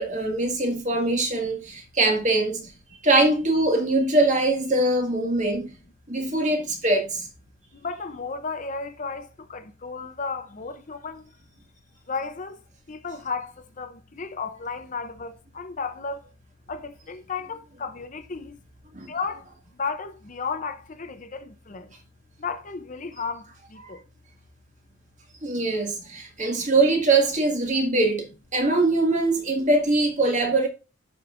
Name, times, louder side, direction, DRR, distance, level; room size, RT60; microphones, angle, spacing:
voice 1, 0.0-2.7 3.0-5.7 6.1-7.3 18.9-19.1 23.8-24.0 25.4-28.3 28.5-30.7, right 2 dB, 35° right, 1.9 m, -22 dB
voice 2, 7.7-11.3 12.1-12.6 12.9-16.3 16.7-18.6 19.1-21.9 22.4-24.0 25.9-26.0 26.6-26.7, left 4 dB, 35° left, 0.6 m, -34 dB
11.5 x 5.3 x 2.5 m
head